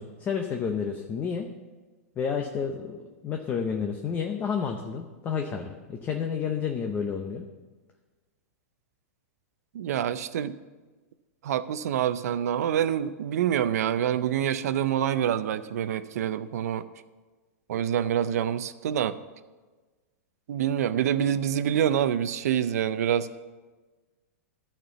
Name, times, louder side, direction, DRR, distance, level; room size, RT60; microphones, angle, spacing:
voice 1, 0.0-1.5 2.2-7.4, left 6 dB, 20° left, 3 dB, 0.7 m, -30 dB
voice 2, 9.7-10.6 11.4-16.9 17.7-19.2 20.5-23.3, right 10 dB, 75° right, 14 dB, 0.5 m, -26 dB
12.5 x 4.5 x 6.9 m, 1.3 s
supercardioid pair, 145°, 8 cm